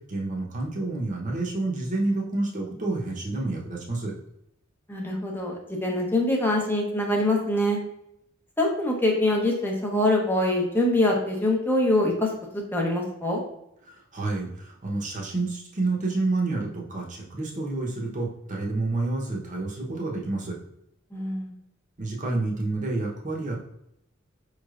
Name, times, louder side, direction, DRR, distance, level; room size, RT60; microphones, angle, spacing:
voice 1, 0.1-4.1 13.8-20.6 22.0-23.6, right 2 dB, 40° right, -2 dB, 0.9 m, -29 dB
voice 2, 4.9-7.8 8.6-12.3 12.5-13.4 21.1-21.5, left 1 dB, 10° left, -1 dB, 0.8 m, -24 dB
5.2 x 3.2 x 2.4 m, 0.78 s
head